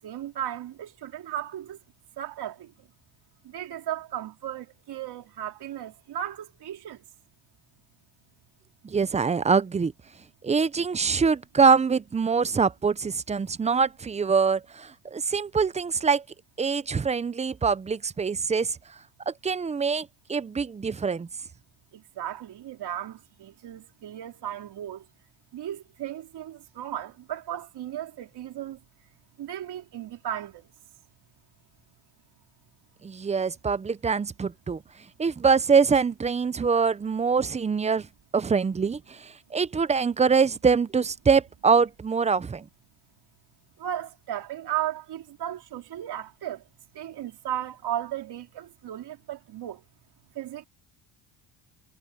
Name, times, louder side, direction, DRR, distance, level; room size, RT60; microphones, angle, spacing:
voice 1, 0.0-1.8 2.2-2.9 3.4-7.0 21.9-25.1 25.5-28.8 29.4-30.7 43.8-46.6 46.9-49.8 50.3-50.6, right 11 dB, 60° right, 4.0 m, -35 dB
voice 2, 8.8-9.9 10.4-16.2 16.6-18.8 19.3-21.3 33.0-34.8 35.2-38.1 38.3-42.7, right 5 dB, 15° right, 0.5 m, -24 dB
cardioid pair, 125°, 44 cm